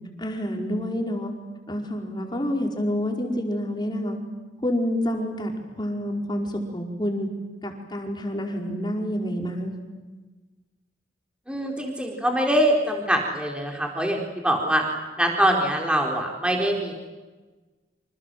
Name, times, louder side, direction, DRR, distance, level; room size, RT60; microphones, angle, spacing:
voice 1, 0.2-1.3 1.7-4.2 4.6-7.3 7.6-9.7, equal, 25° left, 2 dB, 5.0 m, -28 dB
voice 2, 11.5-14.8 15.2-16.9, right 1 dB, 5° right, 1 dB, 4.2 m, -23 dB
28.0 x 27.5 x 7.8 m, 1.2 s
head